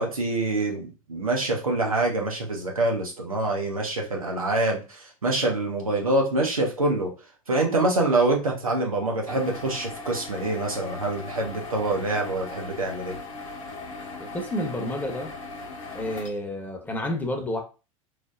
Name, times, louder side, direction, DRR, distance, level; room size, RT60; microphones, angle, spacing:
voice 1, 0.0-7.1 7.5-13.2, right 2 dB, 85° right, 0.8 m, -25 dB
sound 1, 9.3-16.3, left 3 dB, 70° left, 0.7 m, -39 dB
voice 2, 14.2-15.3 15.9-17.6, left 1 dB, 10° left, 0.7 m, -30 dB
3.1 x 2.0 x 2.4 m
figure-of-eight pair, 80°, 18 cm